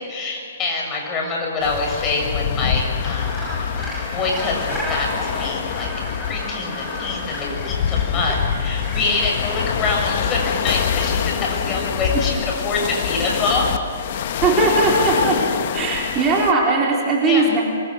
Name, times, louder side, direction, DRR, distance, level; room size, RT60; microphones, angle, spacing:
voice 1, 0.1-3.7 4.1-5.9 6.2-13.8 17.2-17.4, left 3 dB, 25° left, 0 dB, 6.9 m, -25 dB
sound 1, 1.6-16.5, left 8 dB, 45° left, 1.5 m, -25 dB
Gull seagull, 3.0-9.7, right 1 dB, 5° right, 6.4 m, -33 dB
voice 2, 14.4-15.4 15.7-17.6, right 3 dB, 20° right, -2 dB, 4.0 m, -18 dB
26.5 x 23.5 x 6.5 m, 2.4 s
figure-of-eight pair, 120°, 0 cm